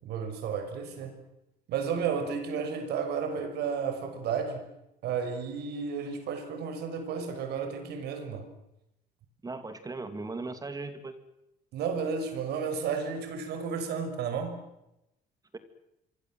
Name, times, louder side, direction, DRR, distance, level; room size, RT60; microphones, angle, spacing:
voice 1, 0.0-1.2 1.7-4.6 5.0-8.5 11.7-14.6, right 6 dB, 75° right, 6.1 m, -32 dB
voice 2, 9.4-11.1 15.5-15.6, right 3 dB, 20° right, 2.9 m, -38 dB
26.5 x 25.0 x 7.8 m
cardioid pair, 110°, 17 cm